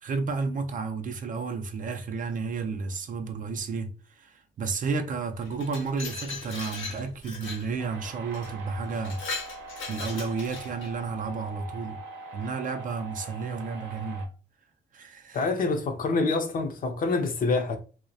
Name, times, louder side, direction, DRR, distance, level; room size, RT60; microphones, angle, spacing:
voice 1, 0.0-9.2 9.9-12.0 12.3-14.3 14.9-15.5, right 4 dB, 45° right, 0.4 m, -32 dB
Glass, 5.4-7.7 8.3-8.5 8.9-10.9, left 4 dB, 75° left, 0.8 m, -38 dB
sound 1, 7.8-14.3, right 3 dB, 80° right, 0.6 m, -42 dB
voice 2, 15.3-17.8, left 3 dB, 45° left, 0.5 m, -26 dB
2.2 x 2.1 x 2.6 m
cardioid pair, 90°, 20 cm